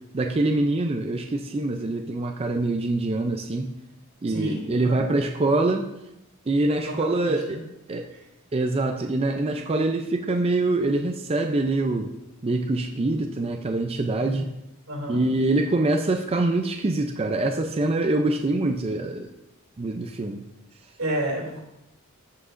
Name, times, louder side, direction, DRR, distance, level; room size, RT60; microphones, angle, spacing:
voice 1, 0.1-3.7 4.2-5.9 6.5-7.6 7.9-8.1 8.5-12.1 12.4-14.5 15.1-19.3 19.8-20.4, right 2 dB, 30° right, 3 dB, 0.4 m, -24 dB
voice 2, 4.3-5.0 6.8-7.2 7.5-7.6 8.1-8.2 14.2-14.4 14.9-15.2 21.0-21.6, right 1 dB, 85° right, -1 dB, 2.6 m, -31 dB
14.0 x 5.8 x 2.6 m, 0.87 s
head